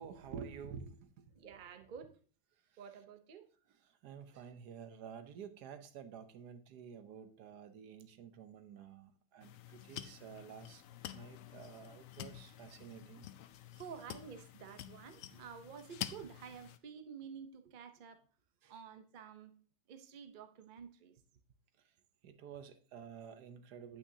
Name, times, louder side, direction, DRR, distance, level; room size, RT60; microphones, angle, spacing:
voice 1, 0.0-1.3 3.9-10.8 11.1-13.3 18.6-18.7 22.2-24.0, right 7 dB, 75° right, 1.3 m, -50 dB
voice 2, 1.3-2.1 2.8-3.5 12.3-12.4 13.7-18.3 18.7-19.5 19.9-21.1, right 7 dB, 45° right, 0.6 m, -51 dB
sound 1, 9.4-16.8, left 11 dB, 70° left, 0.8 m, -49 dB
9.2 x 8.6 x 2.7 m
omnidirectional pair, 1.8 m